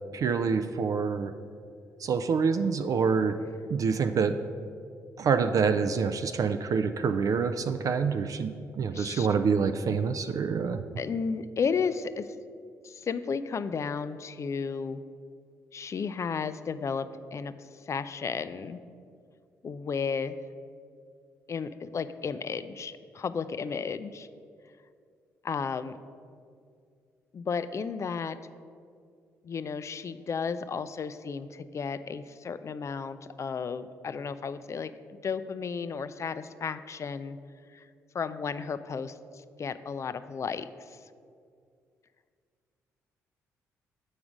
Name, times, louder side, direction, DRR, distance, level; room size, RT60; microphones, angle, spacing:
voice 1, 0.1-1.3 2.0-3.4 3.7-4.3 5.2-8.5 8.8-10.8, right 5 dB, 50° right, 9 dB, 0.4 m, -26 dB
voice 2, 8.9-9.3 11.0-12.3 12.8-15.0 15.7-18.8 19.6-20.4 21.5-24.3 25.4-26.0 27.3-28.4 29.4-34.9 35.2-37.4 37.7-37.9 38.1-41.0, left 5 dB, 40° left, 13 dB, 0.4 m, -33 dB
7.1 x 4.9 x 5.0 m, 2.3 s
hypercardioid pair, 45°, 8 cm